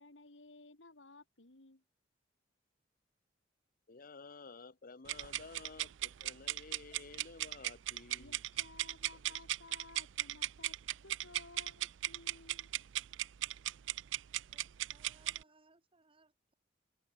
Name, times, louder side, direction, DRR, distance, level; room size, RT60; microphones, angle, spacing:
voice 1, 0.0-1.8 8.2-10.8 11.0-12.7, left 3 dB, 85° left, 2.5 m, -57 dB
voice 2, 3.9-8.4, left 4 dB, 50° left, 1.0 m, -53 dB
sound 1, 5.1-15.4, right 14 dB, 85° right, 0.4 m, -38 dB
voice 3, 14.5-16.5, right 3 dB, 30° right, 2.8 m, -68 dB
head